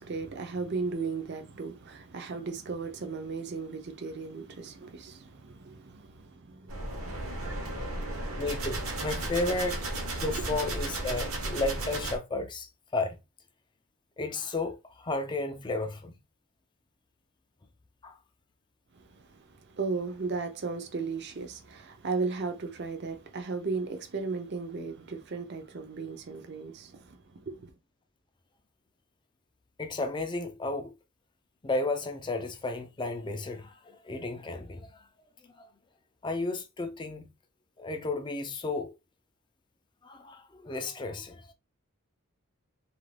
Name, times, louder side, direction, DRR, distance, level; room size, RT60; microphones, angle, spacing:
voice 1, 0.0-8.4 18.9-27.7, right 4 dB, 50° right, 0.5 m, -36 dB
sound 1, 6.7-12.2, right 2 dB, 70° right, 0.8 m, -34 dB
voice 2, 8.4-9.7 10.2-13.2 14.2-16.2 18.0-18.1 29.8-30.9 31.6-35.0 35.6-35.7 36.2-37.3 37.8-38.9 40.0-41.5, left 2 dB, 20° left, 0.4 m, -33 dB
2.5 x 2.2 x 3.2 m
head